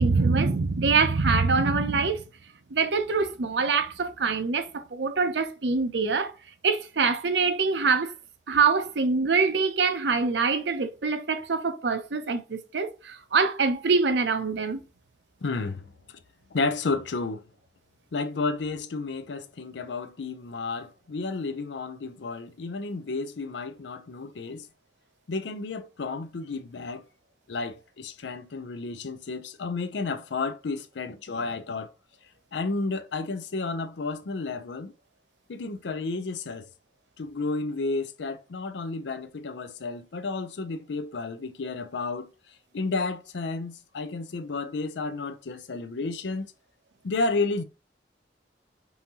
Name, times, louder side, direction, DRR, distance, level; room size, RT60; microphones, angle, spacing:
voice 1, 0.0-2.2 2.7-6.3 6.6-8.1 8.5-14.8, right 4 dB, 75° right, 0.6 m, -24 dB
voice 2, 15.4-16.2 16.5-17.5 18.1-24.7 25.3-27.1 27.5-31.9 32.5-34.9 35.5-36.7 37.2-42.3 42.7-46.5 47.0-47.6, left 3 dB, 80° left, 0.5 m, -32 dB
5.6 x 2.7 x 2.9 m
head